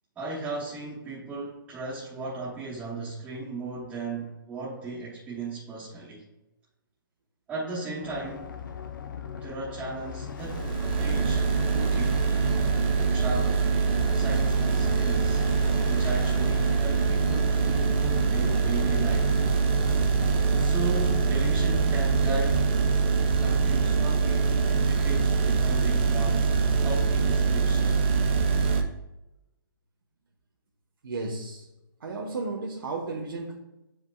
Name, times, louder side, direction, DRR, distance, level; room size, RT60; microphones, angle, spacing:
voice 1, 0.2-6.2 7.5-8.5 9.4-10.7 11.0-12.3 13.0-13.7 14.1-15.4 15.9-19.3 20.5-22.7 23.4-26.5 26.8-27.9, right 3 dB, 10° right, -10 dB, 1.0 m, -36 dB
sound 1, 8.0-21.6, left 7 dB, 65° left, 0.7 m, -40 dB
sound 2, 10.4-28.8, right 5 dB, 30° right, 0.7 m, -24 dB
voice 2, 31.0-31.7 32.0-33.5, right 3 dB, 75° right, -3 dB, 1.1 m, -33 dB
8.5 x 4.9 x 2.3 m, 0.95 s
hypercardioid pair, 165°, 12 cm